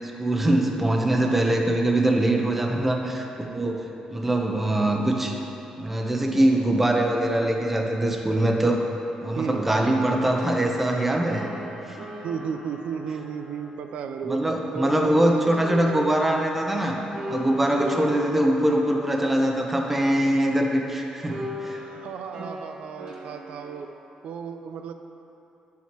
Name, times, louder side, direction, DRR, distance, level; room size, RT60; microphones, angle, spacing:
voice 1, 0.2-3.8 4.1-5.4 5.8-8.9 9.2-11.5 11.9-12.0 14.2-17.0 17.3-21.8, right 1 dB, 10° right, 1 dB, 0.6 m, -23 dB
sound 1, 10.0-15.2 15.4-20.9 21.3-23.8, left 1 dB, 40° right, 0.9 m, -39 dB
voice 2, 12.2-16.4 21.7-23.9 24.2-24.9, right 6 dB, 70° right, 7 dB, 0.3 m, -34 dB
10.5 x 7.2 x 2.9 m, 2.9 s
cardioid pair, 170°, 2 cm